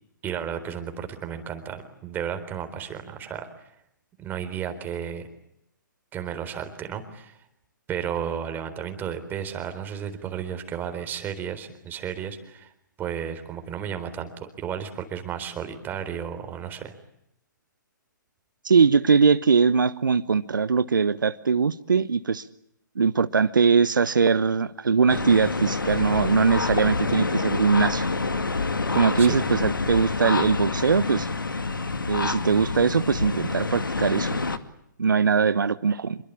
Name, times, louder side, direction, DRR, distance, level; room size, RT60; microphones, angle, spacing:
voice 1, 0.2-3.5 4.2-5.3 6.1-7.4 7.9-12.7 13.0-16.9 29.2-29.4, right 8 dB, 15° right, 8 dB, 4.0 m, -33 dB
voice 2, 18.6-22.5 23.0-28.1 28.9-31.3 32.1-34.4 35.0-36.2, right 5 dB, 75° right, 13 dB, 1.1 m, -21 dB
sound 1, 25.1-34.6, left 3 dB, 85° left, 2.3 m, -27 dB
27.0 x 23.0 x 8.5 m, 0.78 s
figure-of-eight pair, 130°, 11 cm